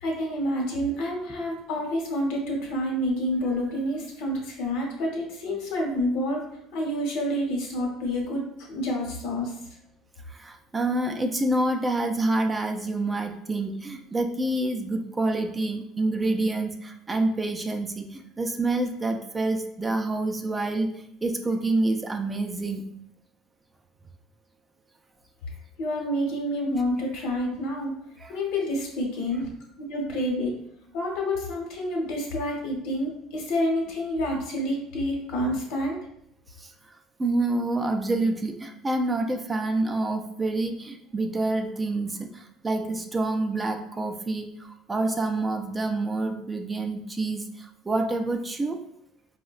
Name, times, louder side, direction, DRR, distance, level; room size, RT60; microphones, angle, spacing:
voice 1, 0.0-6.4 6.7-8.4 8.7-9.5 25.8-27.9 28.3-29.5 29.8-30.6 30.9-36.0, equal, 75° left, 0 dB, 0.9 m, -28 dB
voice 2, 10.3-20.9 21.2-22.9 28.2-28.4 36.6-36.7 37.2-48.8, right 2 dB, 15° right, 4 dB, 0.3 m, -27 dB
4.3 x 2.1 x 2.3 m, 0.72 s
cardioid pair, 125°, 0 cm